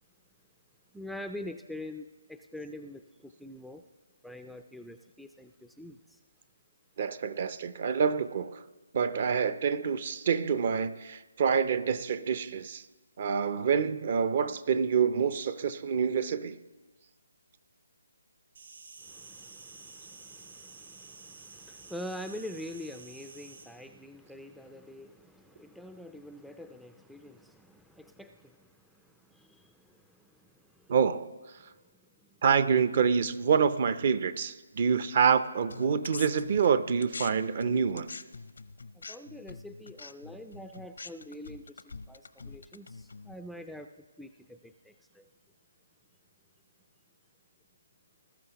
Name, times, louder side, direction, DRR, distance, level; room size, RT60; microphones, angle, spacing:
voice 1, 0.9-3.8 4.2-6.2 19.0-30.9 31.6-32.4 38.9-45.3, left 1 dB, ahead, 6 dB, 0.3 m, -45 dB
voice 2, 7.0-8.6 8.9-12.8 13.2-16.6 30.9-31.3 32.4-38.1, right 6 dB, 45° right, 14 dB, 0.6 m, -27 dB
Insect, 18.5-23.6, right 4 dB, 65° right, 4.5 m, -50 dB
sound 1, 35.7-37.3 37.6-43.3, left 4 dB, 80° left, 0.6 m, -44 dB
19.5 x 12.0 x 2.9 m, 1.2 s
figure-of-eight pair, 155°, 0 cm